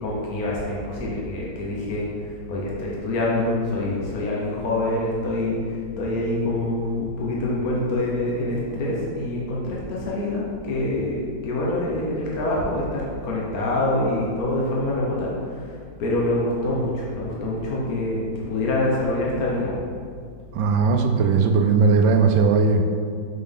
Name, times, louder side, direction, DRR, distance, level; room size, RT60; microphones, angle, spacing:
voice 1, 0.0-2.0 2.5-5.6 6.0-15.3 16.0-19.8, left 1 dB, 55° left, -4 dB, 1.3 m, -25 dB
voice 2, 20.5-22.8, right 4 dB, 80° right, 5 dB, 1.3 m, -18 dB
6.6 x 4.3 x 3.6 m, 2.2 s
omnidirectional pair, 2.1 m